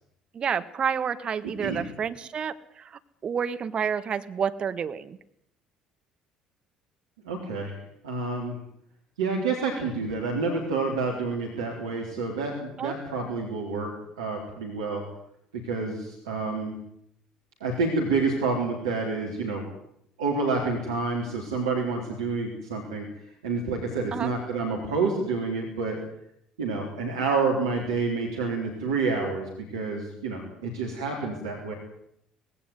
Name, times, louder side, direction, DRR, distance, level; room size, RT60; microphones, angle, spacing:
voice 1, 0.3-5.2 12.8-12.9 24.1-24.3, right 7 dB, 45° right, 11 dB, 1.6 m, -30 dB
voice 2, 7.2-8.6 9.2-13.9 14.2-15.0 15.5-16.8 17.6-19.6 20.2-23.1 23.4-26.0 26.6-31.7, right 4 dB, 80° right, 0 dB, 3.6 m, -28 dB
19.5 x 17.5 x 9.5 m, 0.72 s
hypercardioid pair, 55°, 2 cm